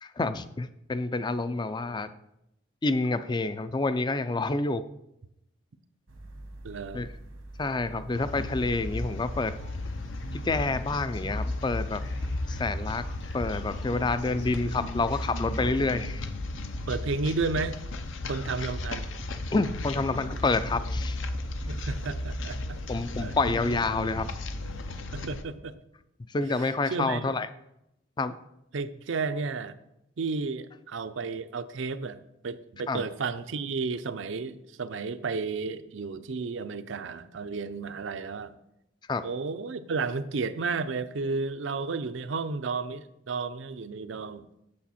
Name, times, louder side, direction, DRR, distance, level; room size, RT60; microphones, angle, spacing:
voice 1, 0.0-2.1 2.8-4.8 6.9-7.1 7.6-9.6 10.3-12.0 12.5-13.0 13.3-16.2 19.5-21.2 22.9-24.3 26.3-27.5 28.2-28.4 32.9-33.0 39.1-39.2, left 3 dB, 20° left, 13 dB, 0.3 m, -28 dB
sound 1, 6.1-25.0, right 1 dB, 90° right, 1.4 m, -45 dB
voice 2, 6.6-7.1 7.9-8.1 14.3-14.6 16.9-17.8 18.3-19.1 21.6-22.8 23.2-23.3 25.1-25.8 26.9-27.3 28.7-29.7 30.2-38.5 39.2-44.5, right 4 dB, 70° right, 11 dB, 0.5 m, -32 dB
sound 2, 8.1-25.4, left 2 dB, 75° left, 0.7 m, -35 dB
Male speech man speaking, 10.2-16.0, left 3 dB, 55° left, 1.4 m, -53 dB
8.5 x 6.7 x 4.2 m, 0.83 s
head